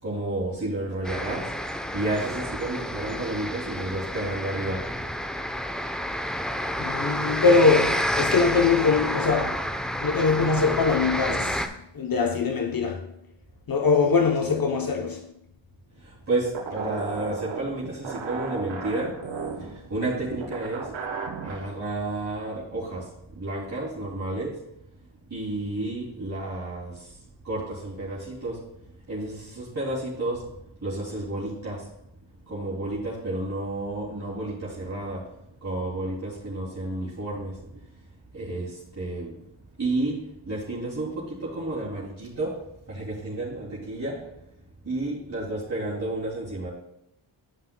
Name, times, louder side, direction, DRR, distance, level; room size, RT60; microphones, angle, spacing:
voice 1, 0.0-4.9 15.9-20.9 21.4-24.6 25.3-27.2 27.4-28.7 29.0-30.5 30.8-31.9 32.5-37.8 38.3-39.4 39.8-44.3 44.8-46.7, right 2 dB, 35° right, 2.6 m, -31 dB
sound 1, 1.0-11.7, equal, ahead, 0.6 m, -29 dB
voice 2, 6.8-9.7 10.0-13.1 13.7-15.3, left 4 dB, 50° left, 0.8 m, -22 dB
sound 2, 16.5-21.7, right 4 dB, 75° right, 1.3 m, -34 dB
12.0 x 5.5 x 2.2 m
cardioid pair, 55°, 46 cm